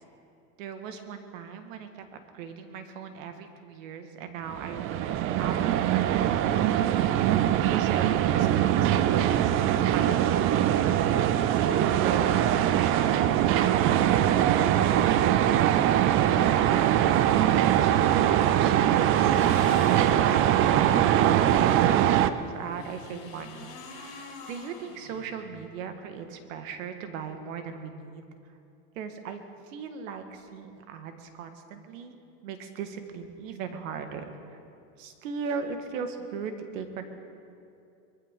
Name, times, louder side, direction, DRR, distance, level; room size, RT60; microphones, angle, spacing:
voice 1, 0.6-2.0 2.3-10.8 11.5-28.2 29.0-29.4 29.6-32.2 32.4-34.6 35.0-37.0, right 6 dB, 70° right, 7 dB, 1.8 m, -38 dB
sound 1, 4.5-22.3, right 11 dB, 30° right, 0.5 m, -22 dB
sound 2, 17.7-20.9 22.3-25.7, left 4 dB, 35° left, 4.6 m, -46 dB
23.0 x 15.5 x 3.8 m, 2.6 s
supercardioid pair, 135°, 41 cm